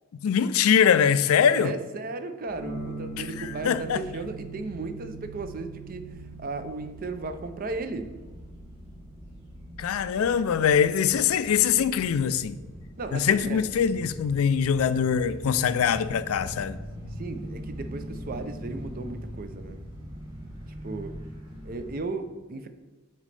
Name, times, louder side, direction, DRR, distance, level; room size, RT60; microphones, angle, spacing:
voice 1, 0.2-1.7 3.2-4.0 9.8-12.6 13.1-16.8, left 7 dB, 70° left, 0.3 m, -23 dB
voice 2, 1.4-8.2 13.0-13.6 17.2-19.8 20.8-21.1 21.6-22.7, right 3 dB, 40° right, 0.5 m, -35 dB
sound 1, 2.5-22.0, equal, 20° right, 2.0 m, -42 dB
sound 2, 2.6-12.4, right 4 dB, 55° right, 1.1 m, -44 dB
8.9 x 4.2 x 3.3 m
head